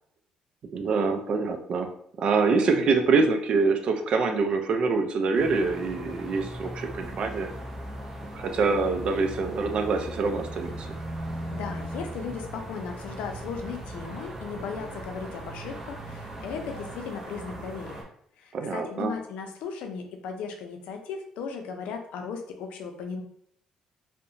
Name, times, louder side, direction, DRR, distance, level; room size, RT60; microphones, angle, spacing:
voice 1, 0.7-1.9 2.2-7.5 8.3-11.0 18.5-19.1, right 4 dB, 55° right, 5 dB, 0.4 m, -25 dB
sound 1, 5.3-18.0, right 1 dB, 15° right, 0.6 m, -38 dB
voice 2, 11.5-18.0 18.4-23.2, left 5 dB, 85° left, 4 dB, 0.4 m, -36 dB
2.7 x 2.1 x 2.6 m, 0.66 s
cardioid pair, 105°, 2 cm